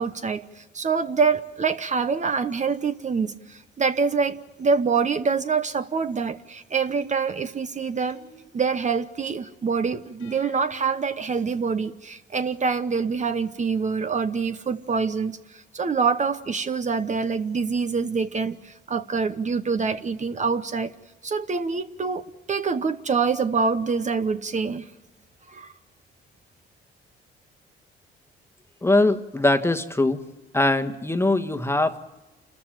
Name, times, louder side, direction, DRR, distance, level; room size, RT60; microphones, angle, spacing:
voice 1, 0.0-8.2 8.5-20.9 21.2-24.8 25.5-25.7, right 5 dB, 35° right, 10 dB, 1.0 m, -25 dB
sound 1, 6.9-7.3 8.1-9.0 10.2-11.0, left 3 dB, 90° left, 2.7 m, -49 dB
voice 2, 28.8-30.2 30.5-32.1, left 2 dB, 10° left, 7 dB, 1.4 m, -22 dB
28.0 x 14.0 x 9.0 m, 1.1 s
cardioid pair, 90°, 20 cm